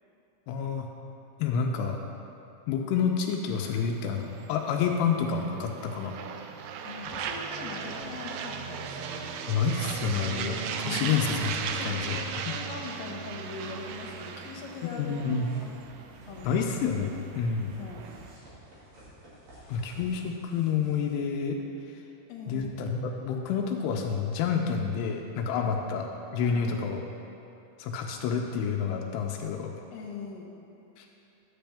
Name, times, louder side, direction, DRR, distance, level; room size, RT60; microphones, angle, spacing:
voice 1, 0.5-0.9 1.4-2.0 2.7-4.2 4.5-6.1 9.5-11.5 11.8-12.2 12.5-12.6 14.8-15.5 16.4-17.7 19.7-21.6 22.5-26.1 26.3-27.0 27.8-29.7 31.0-31.1, left 6 dB, 85° left, 2 dB, 2.7 m, -29 dB
sound 1, 3.5-18.4, right 7 dB, 85° right, 2.2 m, -37 dB
voice 2, 6.8-9.5 10.8-11.2 11.7-15.7 16.3-16.6 17.1-18.1 19.6-19.8 22.3-22.8 25.5-25.8 26.4-26.9 29.9-30.6, left 4 dB, 70° left, -2 dB, 2.4 m, -42 dB
sound 2, 13.4-21.1, right 1 dB, 45° right, 3.1 m, -53 dB
10.0 x 7.7 x 3.4 m, 2.8 s
omnidirectional pair, 4.8 m